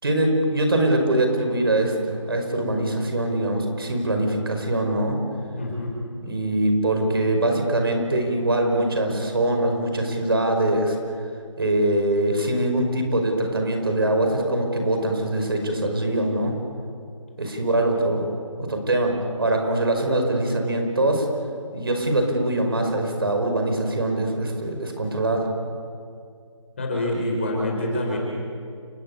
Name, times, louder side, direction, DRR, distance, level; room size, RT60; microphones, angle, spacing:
voice 1, 0.0-5.2 6.2-11.0 11.6-16.5 17.4-18.3 18.6-21.3 21.7-25.5, right 1 dB, 45° right, 4 dB, 5.3 m, -23 dB
voice 2, 5.5-5.9 26.8-28.2, left 1 dB, 25° left, -1 dB, 5.4 m, -26 dB
30.0 x 16.0 x 9.8 m, 2.3 s
figure-of-eight pair, 180°, 17 cm